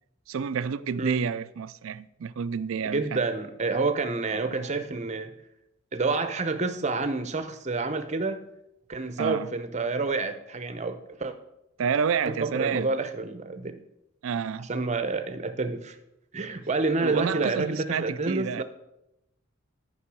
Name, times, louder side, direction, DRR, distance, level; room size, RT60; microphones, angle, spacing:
voice 1, 0.3-3.2 4.5-4.7 9.2-9.5 11.8-13.0 14.2-14.7 17.0-18.6, right 6 dB, 75° right, 0.4 m, -30 dB
voice 2, 1.0-1.3 2.8-5.3 5.9-8.5 8.9-11.3 12.2-13.8 14.6-16.0 16.3-18.6, right 3 dB, 35° right, 0.8 m, -28 dB
10.0 x 5.5 x 6.2 m
head